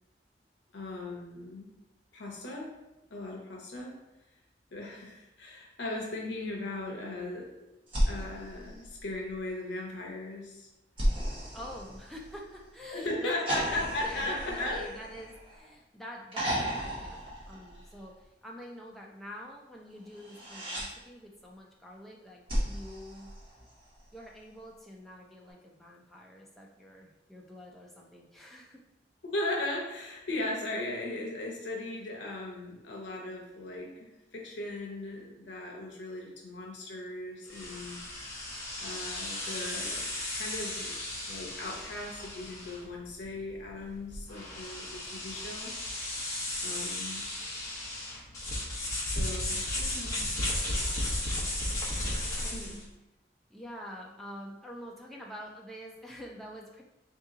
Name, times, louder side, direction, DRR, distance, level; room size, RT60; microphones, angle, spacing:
voice 1, 0.7-1.7 2.1-2.8 3.1-4.0 4.7-7.5 8.1-10.7 12.9-14.8 29.2-38.0 38.8-40.0 40.3-40.9 41.3-45.7 46.6-47.2 49.0-50.4 52.5-52.9, left 2 dB, 85° left, -1 dB, 0.7 m, -37 dB
sound 1, 7.9-9.5 11.0-12.6 13.5-15.7 16.3-18.1 20.1-20.9 22.5-24.0 25.5-25.6, equal, 30° right, 1.0 m, -34 dB
voice 2, 11.5-23.3 24.1-28.8 52.2-52.8 53.5-56.8, equal, ahead, -2 dB, 0.5 m, -47 dB
sound 2, 37.5-52.8, left 1 dB, 20° left, 0.9 m, -35 dB
3.5 x 2.8 x 3.7 m, 0.95 s
head